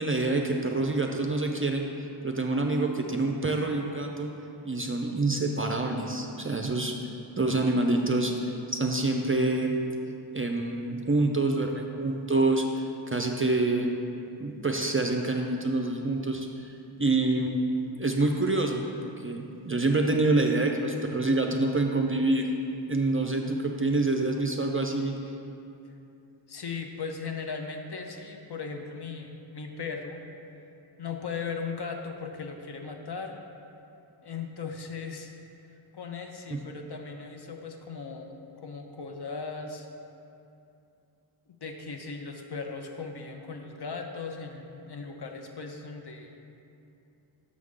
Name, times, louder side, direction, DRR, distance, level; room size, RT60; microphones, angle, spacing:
voice 1, 0.0-1.9 2.2-4.3 4.6-6.9 7.4-9.8 10.3-13.9 14.4-16.7 17.0-17.7 18.0-18.8 19.2-22.5 22.9-25.1 36.5-36.6, right 2 dB, 30° right, 2 dB, 0.4 m, -26 dB
voice 2, 26.5-30.2 31.0-33.4 34.2-35.3 35.9-39.9 41.5-46.4, left 5 dB, 50° left, 4 dB, 0.7 m, -38 dB
6.3 x 6.3 x 3.6 m, 2.7 s
wide cardioid pair, 75°, 50 cm